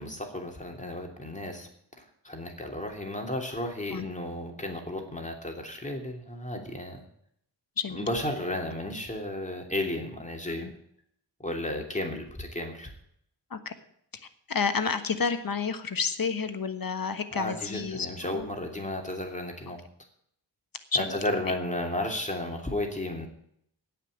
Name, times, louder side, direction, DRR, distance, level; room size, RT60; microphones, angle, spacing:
voice 1, 0.0-1.7 2.0-7.0 7.9-10.7 11.4-12.9 17.3-19.8 20.9-23.3, left 1 dB, 15° left, 2 dB, 2.9 m, -33 dB
voice 2, 14.5-18.5 20.9-21.2, left 5 dB, 50° left, 9 dB, 1.4 m, -30 dB
16.5 x 6.0 x 8.9 m, 0.70 s
cardioid pair, 65°, 43 cm